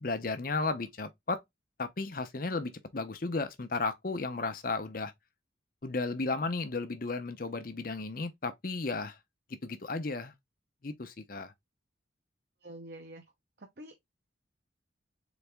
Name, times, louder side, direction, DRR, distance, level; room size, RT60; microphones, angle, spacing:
voice 1, 0.0-1.4 1.8-5.1 5.8-9.2 9.6-10.3 10.8-11.5, left 3 dB, 45° left, 0.7 m, -34 dB
voice 2, 12.6-13.2 13.8-14.0, right 1 dB, 55° right, 0.8 m, -46 dB
4.1 x 3.4 x 3.4 m
head